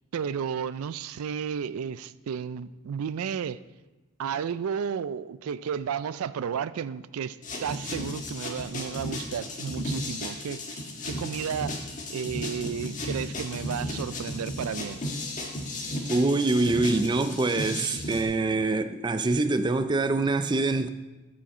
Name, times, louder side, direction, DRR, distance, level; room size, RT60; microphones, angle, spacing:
voice 1, 0.1-3.6 4.2-15.0, right 7 dB, 90° right, 0.4 m, -33 dB
sound 1, 7.4-18.2, left 1 dB, 35° left, 1.6 m, -34 dB
voice 2, 16.1-20.9, right 3 dB, 20° right, 0.4 m, -25 dB
13.5 x 6.3 x 4.2 m
head